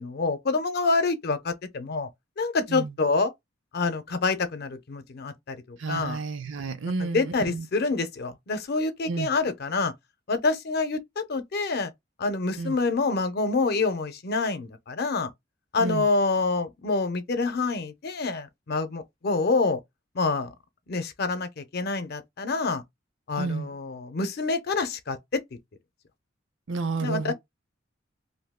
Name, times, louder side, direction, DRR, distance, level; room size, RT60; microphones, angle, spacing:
voice 1, 0.0-2.1 2.4-3.3 3.7-6.2 7.1-9.9 10.3-11.9 12.2-15.3 15.7-19.8 20.1-20.5 20.9-22.8 23.3-25.4 27.0-27.3, left 3 dB, 55° left, 0.6 m, -27 dB
voice 2, 5.8-7.7 9.1-9.3 12.5-12.8 15.8-16.1 23.4-23.7 26.7-27.3, right 3 dB, 80° right, 0.6 m, -30 dB
2.6 x 2.3 x 3.5 m
head